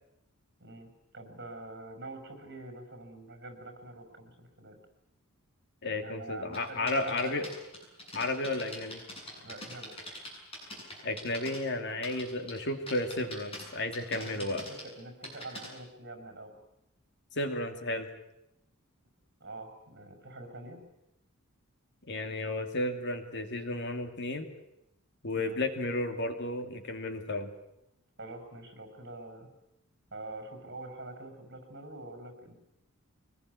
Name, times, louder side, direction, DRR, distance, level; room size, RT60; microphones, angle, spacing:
voice 1, 0.6-4.8 5.9-7.4 9.4-9.9 14.2-16.6 19.4-20.8 25.3-25.6 28.2-29.5 30.1-32.5, right 2 dB, 50° right, 6 dB, 5.8 m, -45 dB
voice 2, 5.8-7.5 8.1-9.0 11.0-14.7 17.3-18.1 22.1-24.5 25.2-27.5, left 2 dB, 55° left, 6 dB, 2.6 m, -33 dB
sound 1, 6.5-11.6 11.9-12.6 12.9-13.6 13.9-15.7, left 1 dB, 25° left, 8.0 m, -43 dB
23.5 x 20.0 x 9.6 m, 0.86 s
head